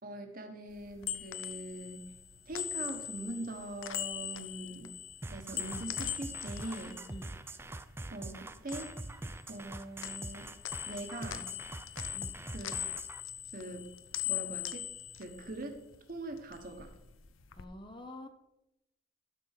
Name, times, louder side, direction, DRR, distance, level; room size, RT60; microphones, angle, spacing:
voice 1, 0.0-2.1 2.5-5.0 5.3-7.0 8.1-8.9 9.5-10.5 10.9-11.5 12.5-12.7 13.5-13.9 14.2-14.9 15.2-15.8 16.1-16.9, right 1 dB, 45° right, 5 dB, 1.3 m, -42 dB
sound 1, 0.7-8.0 8.3-9.7 10.0-16.0 16.3-17.6, left 11 dB, 75° left, 0.6 m, -41 dB
sound 2, 5.2-13.2, right 2 dB, 10° right, 0.3 m, -44 dB
voice 2, 17.5-18.3, left 1 dB, 25° left, 7 dB, 0.7 m, -47 dB
12.0 x 4.3 x 6.6 m, 0.89 s
head